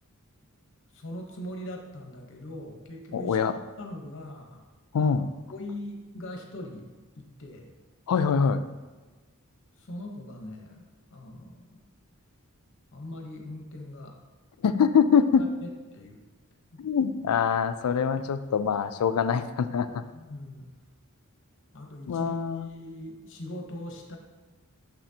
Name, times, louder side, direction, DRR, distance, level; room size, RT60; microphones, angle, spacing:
voice 1, 0.9-3.4 3.8-4.7 5.1-5.2 5.5-7.7 9.8-10.8 11.1-11.8 12.9-14.2 15.4-16.2 16.7-16.8 20.1-20.8 21.7-22.3 22.7-24.2, left 1 dB, 60° left, 2 dB, 1.0 m, -41 dB
voice 2, 3.1-3.6 4.9-5.4 8.1-8.7 14.6-15.5 16.8-20.0 22.1-22.7, left 6 dB, 85° left, 12 dB, 0.4 m, -24 dB
6.7 x 5.9 x 2.8 m, 1.3 s
head